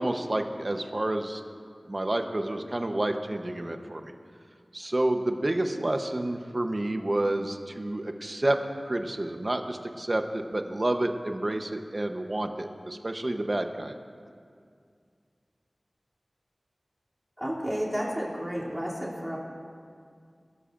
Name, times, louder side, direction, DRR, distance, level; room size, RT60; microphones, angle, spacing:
voice 1, 0.0-1.4 1.9-4.1 4.7-8.6 8.8-13.9, right 1 dB, 40° right, 6 dB, 0.9 m, -29 dB
voice 2, 17.4-19.4, equal, 5° right, -6 dB, 2.8 m, -31 dB
21.0 x 12.5 x 2.6 m, 2.2 s
wide cardioid pair, 65°, 0 cm